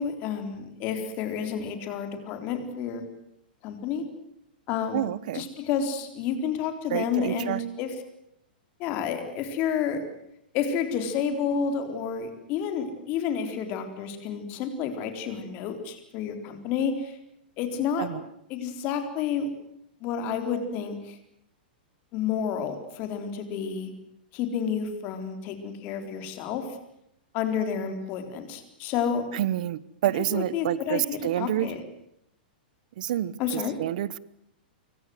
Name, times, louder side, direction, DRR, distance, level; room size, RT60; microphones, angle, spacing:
voice 1, 0.0-3.0 3.6-4.0 4.7-5.1 5.3-7.9 8.8-10.0 10.5-17.2 17.6-18.1 18.5-19.5 20.0-21.2 22.1-23.9 24.3-26.8 27.3-29.3 30.2-31.8 33.4-33.8, left 7 dB, 30° left, 7 dB, 4.0 m, -30 dB
voice 2, 4.9-5.5 6.9-7.6 18.0-18.2 29.3-31.7 33.0-34.2, right 12 dB, 50° right, 20 dB, 1.2 m, -28 dB
26.0 x 24.0 x 7.8 m, 0.78 s
supercardioid pair, 170°, 5 cm